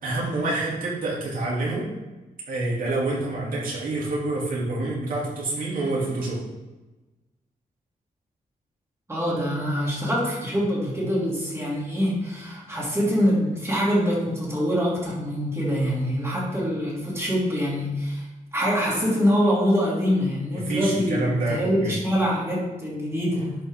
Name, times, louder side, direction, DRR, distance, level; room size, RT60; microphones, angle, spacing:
voice 1, 0.0-1.9 2.5-6.4 20.5-22.0, right 2 dB, 70° right, -5 dB, 2.9 m, -27 dB
voice 2, 9.1-18.3 18.5-23.6, equal, 15° right, -6 dB, 2.9 m, -24 dB
11.0 x 5.5 x 3.7 m, 1.1 s
wide cardioid pair, 160°, 15 cm